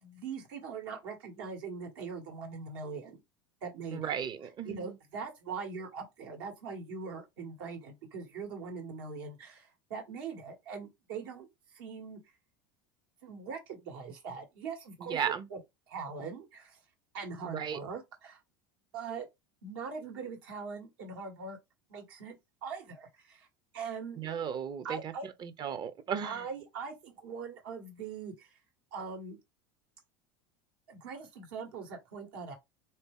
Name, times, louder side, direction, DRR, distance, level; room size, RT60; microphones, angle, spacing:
voice 1, 0.0-3.2 3.6-4.1 4.6-11.5 11.7-12.2 13.2-15.2 15.5-15.6 15.9-16.8 17.1-18.4 18.9-19.3 19.6-21.6 21.9-23.5 23.7-24.2 24.8-25.3 26.2-28.5 28.9-29.4 30.9-32.5, right 5 dB, 75° right, 1.6 m, -41 dB
voice 2, 3.9-5.0 15.1-15.5 17.4-17.8 24.2-26.5, right 8 dB, 35° right, 0.6 m, -35 dB
3.5 x 2.8 x 3.6 m
supercardioid pair, 105°, 12 cm